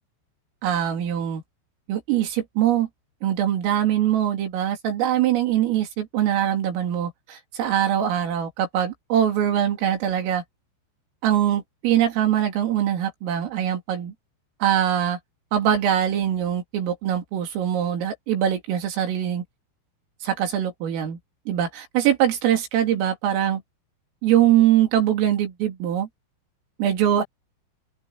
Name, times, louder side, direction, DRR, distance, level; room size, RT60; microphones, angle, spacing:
voice 1, 0.6-1.4 1.9-2.9 3.2-10.4 11.2-14.1 14.6-15.2 15.5-19.4 20.2-21.2 21.5-23.6 24.2-26.1 26.8-27.2, right 10 dB, 85° right, 6.0 m, -22 dB
open air
omnidirectional pair, 5.7 m